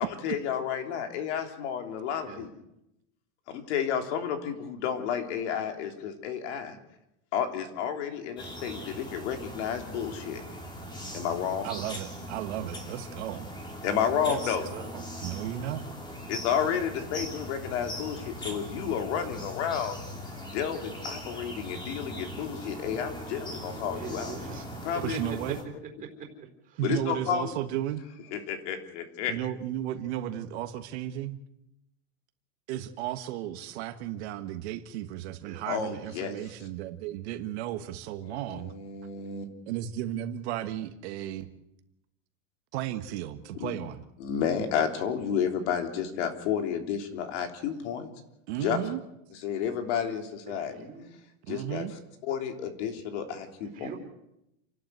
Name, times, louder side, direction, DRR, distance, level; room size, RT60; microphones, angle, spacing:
voice 1, 0.0-2.5 3.5-6.8 7.3-10.4 11.1-11.7 13.8-14.6 16.3-20.0 20.5-24.3 24.8-25.3 26.8-27.5 28.3-29.3 35.7-36.3 37.8-37.9 38.2-39.5 43.6-43.7 44.2-48.1 48.5-48.8 49.4-50.9 51.5-51.8 52.2-53.9, left 8 dB, 60° left, 5 dB, 3.4 m, -31 dB
sound 1, 8.4-25.6, equal, 10° left, 2.9 m, -40 dB
voice 2, 9.9-10.3 14.4-14.9 23.9-24.6 24.9-25.0 26.6-26.8 35.4-35.6 48.6-48.7 50.5-51.2 53.7-54.0, right 6 dB, 20° right, 3 dB, 4.2 m, -44 dB
voice 3, 11.6-13.5 14.2-14.6 14.9-15.9 25.0-25.6 26.8-28.0 29.3-31.4 32.7-38.7 39.7-41.5 42.7-44.0 48.5-49.0 51.5-51.9, right 12 dB, 55° right, 9 dB, 1.5 m, -34 dB
29.0 x 12.0 x 8.1 m, 0.86 s
supercardioid pair, 170°, 39 cm